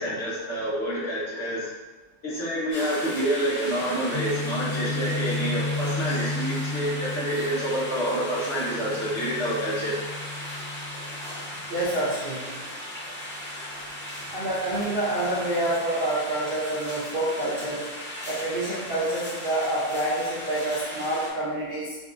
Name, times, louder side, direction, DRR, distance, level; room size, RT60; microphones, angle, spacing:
voice 1, 0.0-1.7 2.2-9.9, right 1 dB, 50° left, -8 dB, 1.0 m, -28 dB
sound 1, 2.7-21.3, left 1 dB, 10° left, 1.0 m, -37 dB
Guitar, 4.1-12.0, left 3 dB, 70° left, 0.6 m, -33 dB
voice 2, 11.7-12.6 14.3-17.9 18.3-22.0, right 1 dB, 50° right, -9 dB, 0.7 m, -27 dB
5.1 x 2.3 x 2.5 m, 1.2 s
omnidirectional pair, 1.7 m